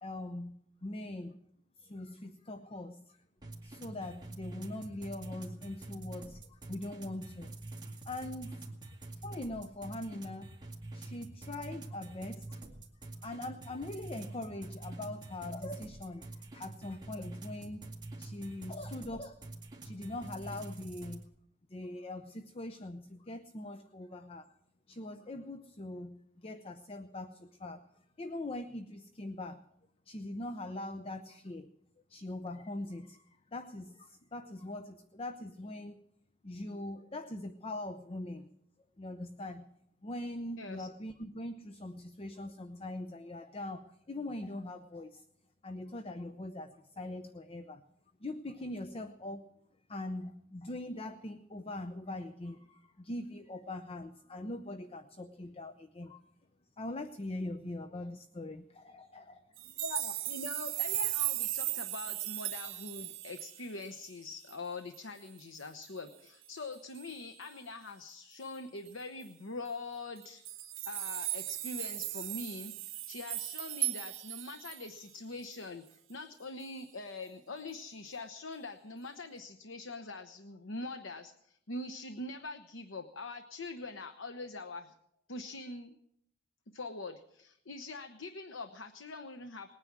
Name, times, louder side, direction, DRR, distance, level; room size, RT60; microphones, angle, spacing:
voice 1, 0.0-1.4 1.8-3.2 3.6-7.5 8.0-8.7 9.1-10.5 10.9-12.6 13.2-17.9 18.2-19.4 19.8-21.3 21.7-24.5 24.9-27.8 28.2-29.6 30.1-31.7 32.1-36.0 36.4-38.5 39.0-39.7 40.0-45.2 45.6-47.8 48.2-49.5 49.9-56.2 56.8-59.8, left 1 dB, 30° left, 10 dB, 0.6 m, -42 dB
sound 1, 3.4-21.2, right 2 dB, 20° right, 2.2 m, -46 dB
voice 2, 40.6-40.9 59.8-70.4 70.9-84.9 85.3-86.0 86.7-89.7, left 3 dB, 80° left, 7 dB, 1.0 m, -43 dB
sound 2, 59.6-64.1 64.5-64.6 64.9-65.0 65.4-65.9 67.0-67.2 68.9-69.0 69.2-69.3 70.2-75.0 75.5-75.6, right 15 dB, 80° right, 0.9 m, -37 dB
20.0 x 9.8 x 7.4 m, 0.75 s
head